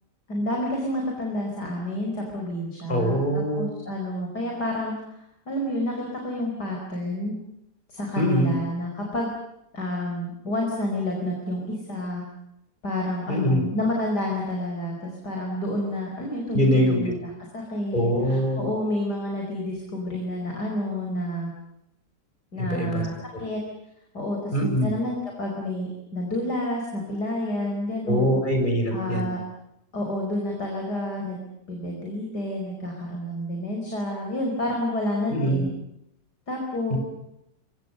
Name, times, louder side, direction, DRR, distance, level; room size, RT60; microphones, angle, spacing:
voice 1, 0.3-3.2 3.5-4.9 5.5-7.3 7.9-9.3 9.7-12.2 12.8-21.5 22.5-23.6 24.1-28.4 28.9-29.4 29.9-31.4 31.7-35.7 36.5-37.0, left 1 dB, 75° left, 0 dB, 5.6 m, -29 dB
voice 2, 2.9-3.7 8.2-8.6 13.3-13.6 16.5-17.0 17.9-18.7 22.6-23.0 24.5-24.9 28.1-29.3 35.3-35.6 36.9-37.0, equal, 25° left, 3 dB, 7.0 m, -23 dB
29.0 x 24.0 x 6.7 m, 0.81 s
omnidirectional pair, 1.8 m